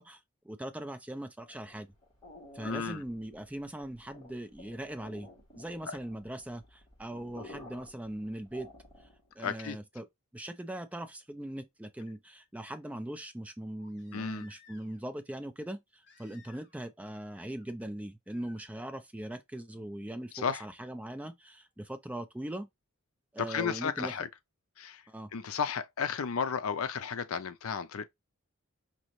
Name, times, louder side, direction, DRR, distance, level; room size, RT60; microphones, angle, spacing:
voice 1, 0.0-1.9 2.5-5.3 5.5-8.7 9.4-10.1 10.3-22.7 23.3-24.2 25.1-25.3, right 1 dB, 5° right, 0.4 m, -40 dB
sound 1, 1.4-9.3, left 1 dB, 15° left, 3.1 m, -53 dB
voice 2, 2.6-3.0 5.9-6.0 9.4-9.8 14.1-14.5 20.3-20.6 23.5-24.3 24.8-25.0 25.3-28.0, left 6 dB, 70° left, 0.5 m, -33 dB
Crying sobbing, 13.8-15.1 16.0-16.9 17.1-17.7 18.3-18.6 20.2-20.3, left 4 dB, 50° left, 1.7 m, -60 dB
5.3 x 2.8 x 3.0 m
head